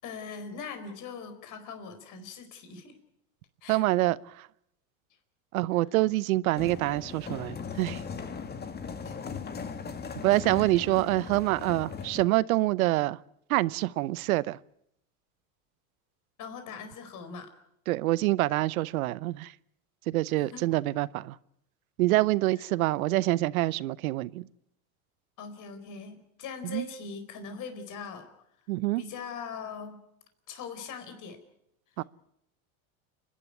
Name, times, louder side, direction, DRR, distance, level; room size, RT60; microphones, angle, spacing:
voice 1, 0.0-3.0 3.6-3.8 9.0-9.2 10.6-10.7 16.4-17.5 20.5-20.6 25.4-28.3 29.0-30.0 30.5-31.4, left 5 dB, 45° left, 4.6 m, -41 dB
voice 2, 3.7-4.5 5.5-8.0 10.2-13.2 13.5-14.6 17.9-19.5 20.1-21.4 22.0-24.5 26.6-26.9 28.7-29.0 32.0-32.1, right 18 dB, 80° right, 0.9 m, -26 dB
sound 1, 6.6-12.2, left 5 dB, 25° left, 1.8 m, -39 dB
30.0 x 12.0 x 9.7 m
supercardioid pair, 110°, 41 cm